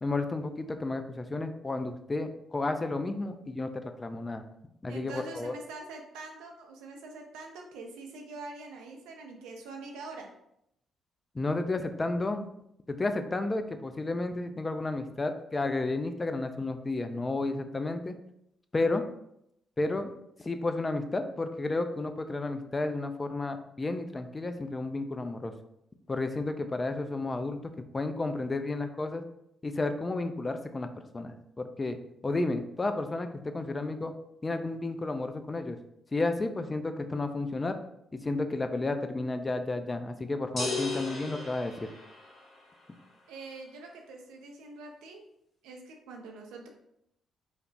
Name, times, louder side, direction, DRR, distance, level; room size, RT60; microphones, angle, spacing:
voice 1, 0.0-4.4 4.8-5.5 11.3-12.5 12.9-18.2 18.7-19.0 19.8-20.1 20.4-25.5 26.1-29.3 29.6-30.9 31.1-32.0 32.2-34.1 34.4-35.8 36.1-37.8 38.2-41.9, left 2 dB, 30° left, 7 dB, 0.3 m, -32 dB
voice 2, 4.9-10.3 43.3-45.2 45.6-46.7, right 3 dB, 70° right, 2 dB, 0.4 m, -44 dB
sound 1, 40.6-42.6, left 3 dB, 50° left, 1.2 m, -35 dB
3.1 x 2.0 x 2.6 m, 0.78 s
figure-of-eight pair, 40°, 0 cm